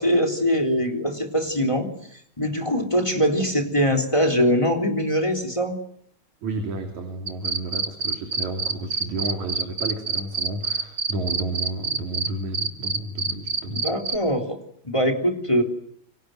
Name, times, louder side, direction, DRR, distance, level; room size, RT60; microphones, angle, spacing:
voice 1, 0.0-1.9 2.4-5.8 13.7-14.6 14.8-15.6, equal, 10° left, 5 dB, 3.4 m, -22 dB
voice 2, 6.4-13.9, right 2 dB, 70° right, 4 dB, 4.4 m, -31 dB
sound 1, 7.3-12.3 12.5-14.2, right 4 dB, 35° right, 1.5 m, -25 dB
29.0 x 24.5 x 7.9 m, 0.70 s
omnidirectional pair, 3.5 m